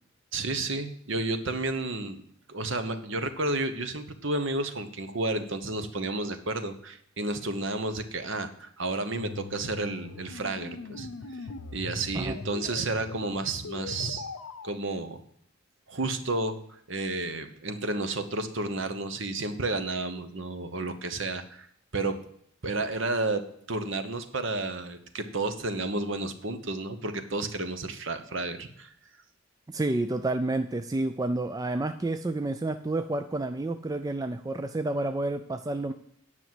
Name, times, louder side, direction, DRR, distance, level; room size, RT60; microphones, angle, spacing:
voice 1, 0.3-2.2 2.5-11.4 11.7-14.3 14.6-15.2 15.9-21.7 21.9-22.1 22.6-23.4 23.7-28.9, right 2 dB, 55° right, 9 dB, 1.1 m, -31 dB
sound 1, 9.2-14.7, left 3 dB, 90° left, 0.8 m, -40 dB
voice 2, 29.7-35.9, right 2 dB, 15° right, 8 dB, 0.3 m, -30 dB
9.9 x 6.2 x 7.7 m, 0.69 s
head